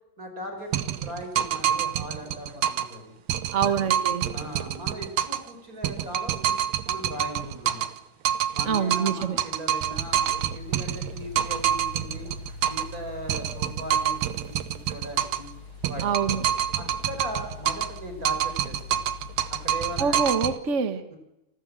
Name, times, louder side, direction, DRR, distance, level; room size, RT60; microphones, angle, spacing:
voice 1, 0.2-3.1 3.6-3.7 4.3-6.5 6.9-7.9 8.5-12.3 12.7-15.5 15.9-16.0 16.7-19.1 19.6-20.2 21.1-21.2, equal, 25° right, 5 dB, 5.6 m, -38 dB
sound 1, 0.7-3.0 3.3-5.5 5.8-8.0 8.2-13.0 13.3-15.5 15.8-18.0 18.2-20.6, right 10 dB, 65° right, 1.8 m, -27 dB
voice 2, 3.5-4.2 8.7-9.4 16.0-16.4 20.0-21.0, right 6 dB, 85° right, 10 dB, 0.6 m, -25 dB
sound 2, 9.9-20.4, left 4 dB, 45° left, 2.4 m, -42 dB
30.0 x 19.0 x 7.6 m, 0.91 s
omnidirectional pair, 3.7 m